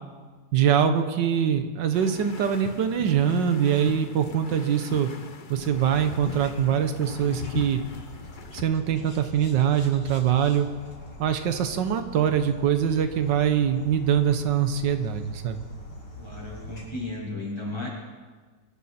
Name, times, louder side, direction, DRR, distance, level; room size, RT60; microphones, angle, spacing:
voice 1, 0.5-5.1 5.5-7.8 8.5-10.7 11.2-15.7, right 8 dB, 80° right, 8 dB, 1.6 m, -23 dB
sound 1, 1.9-8.6, left 5 dB, 40° left, 0.7 m, -39 dB
sound 2, 5.6-16.9, left 1 dB, 80° left, 4.8 m, -44 dB
voice 2, 16.2-17.9, left 2 dB, 15° left, -4 dB, 4.4 m, -34 dB
24.0 x 12.5 x 4.3 m, 1.4 s
omnidirectional pair, 1.9 m